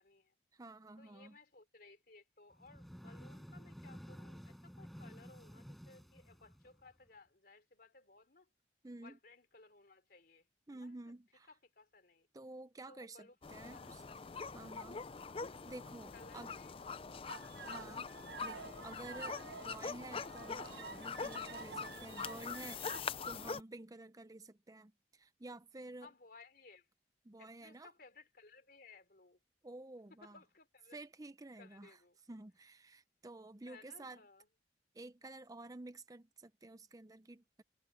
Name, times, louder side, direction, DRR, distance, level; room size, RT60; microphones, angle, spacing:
voice 1, 0.0-0.3 1.0-8.5 9.0-11.1 11.5-12.3 12.9-13.3 13.7-14.2 16.1-16.9 17.4-18.0 26.0-26.9 27.4-29.4 30.2-31.0 31.6-32.2 33.6-34.5, left 3 dB, 55° left, 3.2 m, -61 dB
voice 2, 0.5-1.4 8.8-9.2 10.7-11.5 12.3-14.0 14.5-15.0 15.7-16.5 17.6-18.1 18.4-26.1 27.2-27.9 29.6-30.4 30.9-32.0 32.3-34.2 34.9-37.6, right 2 dB, 20° right, 0.6 m, -51 dB
sound 1, 2.5-7.1, equal, ahead, 5.2 m, -52 dB
sound 2, 13.4-23.6, left 5 dB, 30° left, 0.5 m, -44 dB
sound 3, 17.3-23.0, right 5 dB, 65° right, 1.2 m, -50 dB
head